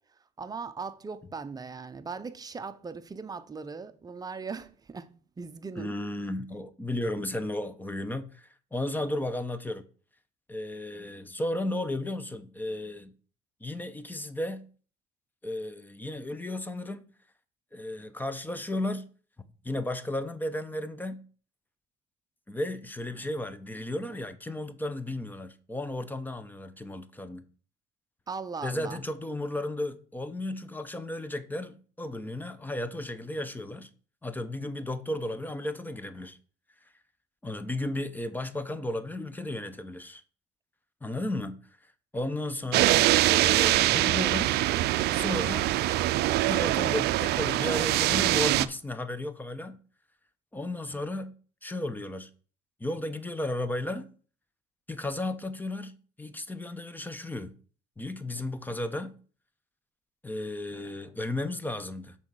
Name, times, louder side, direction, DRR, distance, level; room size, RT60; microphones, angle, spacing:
voice 1, 0.4-6.0 28.3-29.0, right 5 dB, 20° right, 0.7 m, -39 dB
voice 2, 5.8-9.8 10.5-13.1 13.6-14.6 15.4-17.1 17.7-19.0 19.6-21.2 22.5-27.4 28.6-33.9 34.2-36.4 37.4-40.2 41.0-41.6 42.1-44.6 45.1-46.2 46.5-49.8 50.5-51.3 51.6-52.3 52.8-54.1 54.9-57.5 58.0-59.1 60.2-62.1, left 1 dB, 10° left, 0.8 m, -34 dB
sound 1, 42.7-48.7, right 16 dB, 75° right, 0.4 m, -24 dB
6.2 x 4.2 x 6.3 m
cardioid pair, 110°, 17 cm